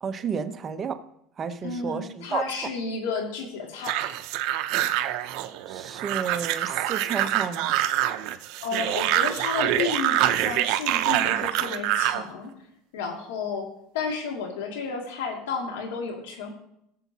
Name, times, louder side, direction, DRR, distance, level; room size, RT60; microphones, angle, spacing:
voice 1, 0.0-1.0 1.4-2.5 5.7-7.7, right 6 dB, 30° right, 0.7 m, -31 dB
voice 2, 1.6-3.9 8.6-12.5 12.9-13.7 13.9-16.5, left 5 dB, 90° left, 2.2 m, -32 dB
sound 1, 3.8-12.2, right 13 dB, 65° right, 0.6 m, -25 dB
19.0 x 7.1 x 2.8 m
supercardioid pair, 125°, 0 cm